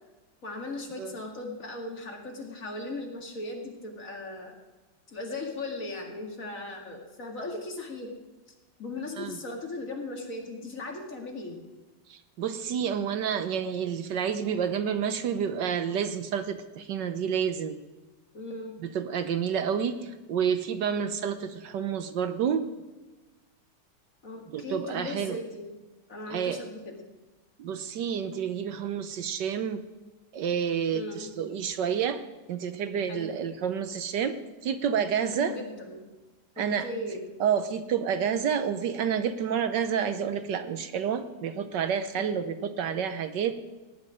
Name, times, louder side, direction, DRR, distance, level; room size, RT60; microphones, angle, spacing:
voice 1, 0.4-4.6 5.1-8.1 8.8-11.6 18.3-18.8 24.2-25.7 26.1-27.0 30.9-31.3 33.1-33.3 35.2-36.1 36.6-37.2 42.2-42.7, left 2 dB, 45° left, 1 dB, 2.5 m, -38 dB
voice 2, 12.1-17.8 18.8-22.7 24.5-25.4 26.3-26.6 27.6-29.8 30.3-32.2 32.5-34.3 34.6-35.6 36.6-36.9 37.4-43.6, right 7 dB, 70° right, 10 dB, 1.4 m, -29 dB
17.5 x 6.0 x 9.9 m, 1.2 s
omnidirectional pair, 2.0 m